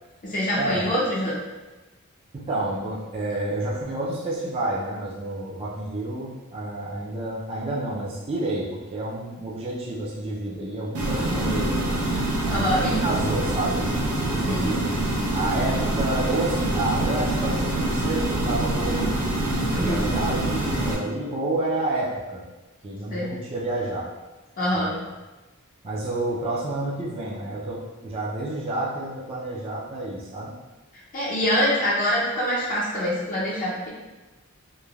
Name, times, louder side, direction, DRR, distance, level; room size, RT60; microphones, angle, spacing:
voice 1, 0.2-1.4 12.5-12.9 14.4-14.8 19.7-20.0 23.1-23.3 24.6-24.9 31.1-33.9, equal, 35° left, -6 dB, 0.5 m, -25 dB
voice 2, 2.3-12.0 12.7-14.8 15.3-19.1 19.5-22.4 22.8-24.1 24.7-25.0 25.8-30.5, right 2 dB, 25° right, -6 dB, 0.3 m, -29 dB
sound 1, 10.9-20.9, right 1 dB, 85° right, 0.6 m, -25 dB
3.1 x 2.1 x 2.3 m, 1.2 s
head